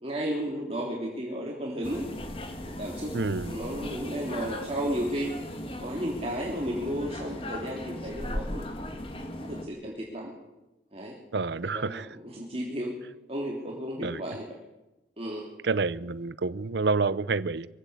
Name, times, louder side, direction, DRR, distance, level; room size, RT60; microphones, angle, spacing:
voice 1, 0.0-2.1 2.6-3.1 3.5-5.3 5.8-8.7 9.4-10.3 10.9-11.1 11.6-12.9 13.3-14.5 15.2-15.4, equal, 30° right, 3.3 m, -33 dB
sound 1, 1.8-9.6, left 1 dB, 30° left, 2.2 m, -37 dB
voice 2, 3.1-3.5 11.3-12.2 14.0-14.2 15.6-17.7, right 4 dB, 70° right, 0.6 m, -28 dB
23.5 x 15.5 x 8.2 m
head